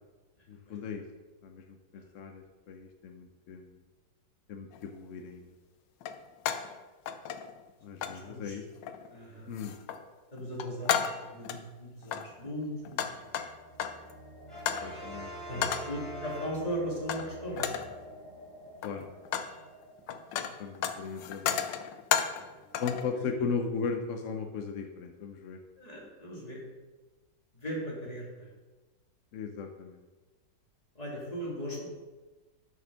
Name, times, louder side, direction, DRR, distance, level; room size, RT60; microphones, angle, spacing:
voice 1, 0.5-1.0 1.4-3.8 4.5-5.5 7.8-8.6 9.5-9.7 14.8-15.7 18.8-19.1 20.6-21.6 22.8-25.6 29.3-30.1, left 5 dB, 60° left, 4 dB, 0.8 m, -37 dB
sound 1, 4.7-4.9 6.0-6.8 7.1-7.7 8.0-8.2 8.8-9.2 9.5-10.0 10.4-11.6 12.0-14.1 14.7-14.9 15.6-16.0 17.1-17.3 17.6-18.0 18.7-19.6 19.8-22.5 22.7-23.1, left 8 dB, 80° left, 1.3 m, -33 dB
voice 2, 8.0-8.6 9.1-9.5 10.3-13.4 15.5-17.9 22.3-22.7 23.1-23.5 25.8-26.6 27.5-28.5 30.9-31.9, equal, 20° left, -5 dB, 2.7 m, -38 dB
sound 2, 11.9-22.1, equal, 30° right, 2.0 m, -50 dB
Brass instrument, 14.5-17.1, right 2 dB, ahead, 2.9 m, -44 dB
7.0 x 6.3 x 6.3 m, 1.2 s
omnidirectional pair, 2.0 m